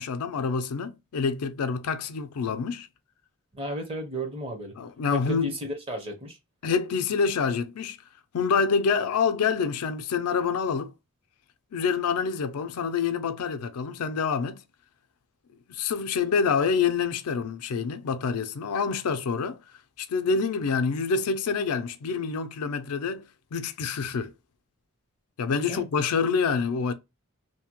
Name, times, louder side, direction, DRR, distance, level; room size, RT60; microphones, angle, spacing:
voice 1, 0.0-2.9 4.8-5.5 6.6-8.0 8.3-10.9 11.7-14.6 15.7-19.6 20.0-23.2 23.5-24.3 25.4-26.9, left 5 dB, 85° left, 0.4 m, -27 dB
voice 2, 3.5-4.7 5.1-6.4 25.7-25.9, equal, 25° right, 0.8 m, -33 dB
2.7 x 2.1 x 2.8 m
head